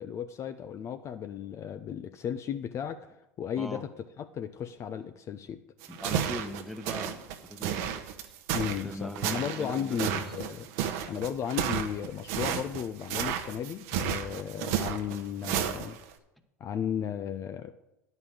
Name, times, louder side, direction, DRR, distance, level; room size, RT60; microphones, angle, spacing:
voice 1, 0.0-3.1 3.4-3.9 4.2-5.6 8.5-10.7 11.1-16.0 16.6-17.7, left 8 dB, 40° left, 10 dB, 0.6 m, -35 dB
sound 1, 5.8-16.1, right 9 dB, 65° right, 1.0 m, -32 dB
voice 2, 5.9-8.3 8.8-10.2, left 1 dB, ahead, 7 dB, 1.1 m, -40 dB
9.6 x 5.4 x 7.7 m, 0.92 s
hypercardioid pair, 90°, 8 cm